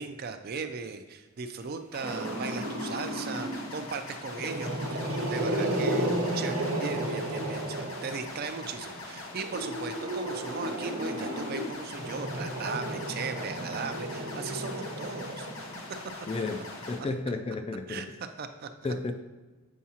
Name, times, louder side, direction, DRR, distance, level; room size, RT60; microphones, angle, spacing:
voice 1, 0.0-15.5 17.9-18.1 18.4-18.7, right 5 dB, 45° right, 8 dB, 0.4 m, -38 dB
sound 1, 1.9-17.0, left 2 dB, 70° left, 0.9 m, -42 dB
Growling, 2.0-3.7 4.3-8.5 9.4-16.0, right 1 dB, 75° right, 0.9 m, -33 dB
voice 2, 16.3-16.6 16.9-18.1 18.8-19.1, left 3 dB, 25° left, 7 dB, 0.3 m, -32 dB
7.2 x 4.6 x 2.8 m, 1.3 s
head